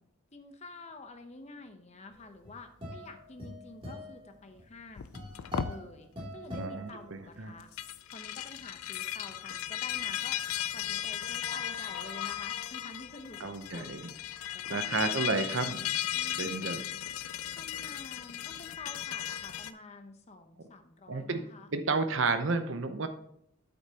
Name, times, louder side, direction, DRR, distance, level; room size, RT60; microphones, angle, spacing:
voice 1, 0.3-5.1 5.6-7.7 8.1-10.4 10.7-14.0 14.5-15.0 16.1-17.0 17.6-21.7, left 3 dB, 30° left, 7 dB, 0.8 m, -49 dB
sound 1, 2.2-7.6, equal, 25° right, 2.8 m, -44 dB
sound 2, 5.0-5.8 7.6-19.7, left 11 dB, 85° left, 0.4 m, -36 dB
voice 2, 6.6-7.5 13.4-14.1 14.4-15.9 16.3-16.8 21.1-21.4 21.7-23.1, right 3 dB, 60° right, 8 dB, 0.7 m, -32 dB
8.3 x 8.0 x 2.9 m, 0.69 s
head